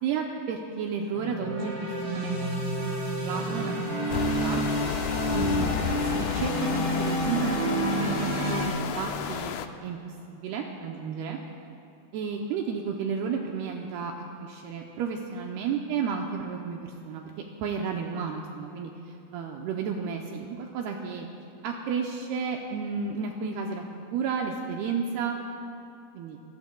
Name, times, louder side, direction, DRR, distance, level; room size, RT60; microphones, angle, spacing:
voice 1, 0.0-2.5 2.8-4.6 5.3-7.7 8.0-8.6 8.9-9.5 9.8-11.4 12.1-14.1 14.4-17.3 17.6-18.9 19.3-21.3 21.6-23.8 24.1-25.4 26.2-26.4, right 6 dB, 80° right, 1 dB, 2.5 m, -32 dB
sound 1, 1.1-8.7, right 1 dB, 35° right, 4.5 m, -29 dB
sound 2, 4.1-9.7, left 9 dB, 85° left, 2.2 m, -32 dB
28.0 x 15.5 x 2.3 m, 2.7 s
omnidirectional pair, 5.0 m